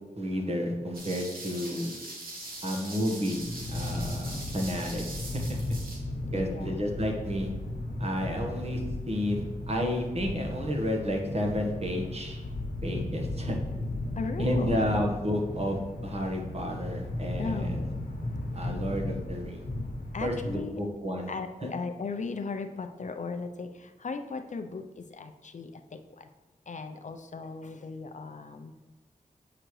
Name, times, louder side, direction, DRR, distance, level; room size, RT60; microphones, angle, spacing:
voice 1, 0.2-1.9 2.6-3.4 3.7-5.0 5.3-5.6 6.3-7.5 8.0-12.4 12.8-13.6 14.4-17.8 18.5-19.7 20.2-21.3 21.6-21.7, equal, 45° right, 1 dB, 1.3 m, -31 dB
sound 1, 0.9-6.0, right 2 dB, 85° right, 1.4 m, -42 dB
sound 2, 3.3-20.6, left 1 dB, 75° left, 1.1 m, -35 dB
voice 2, 6.3-6.8 14.2-14.9 17.4-18.0 20.1-20.8 21.3-26.3 26.7-28.7, left 4 dB, 55° left, 7 dB, 0.5 m, -37 dB
7.7 x 5.0 x 3.1 m, 1.2 s
cardioid pair, 55°, 15 cm